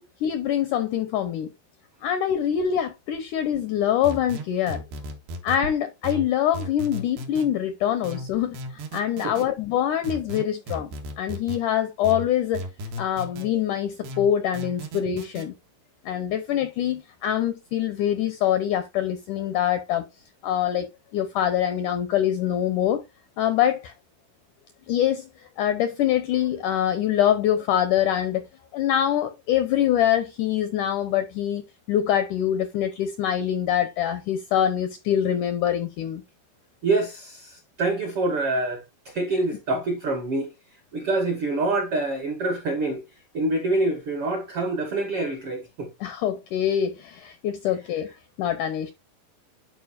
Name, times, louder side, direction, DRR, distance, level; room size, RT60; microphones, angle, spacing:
voice 1, 0.2-1.5 2.0-4.8 5.4-10.9 11.2-12.7 13.0-15.5 16.1-20.1 20.4-23.0 23.4-23.9 24.9-25.3 25.6-28.4 28.7-36.2 46.0-48.1 48.4-48.9, left 10 dB, 85° left, 1.8 m, -24 dB
sound 1, 4.0-5.6 6.0-7.5 8.0-9.5 10.0-11.6 12.0-13.5 14.0-15.5, equal, 90° right, 3.6 m, -35 dB
voice 2, 36.8-40.5 40.9-43.0 43.3-45.9, right 2 dB, 75° right, 1.3 m, -26 dB
11.5 x 4.6 x 2.5 m
omnidirectional pair, 4.5 m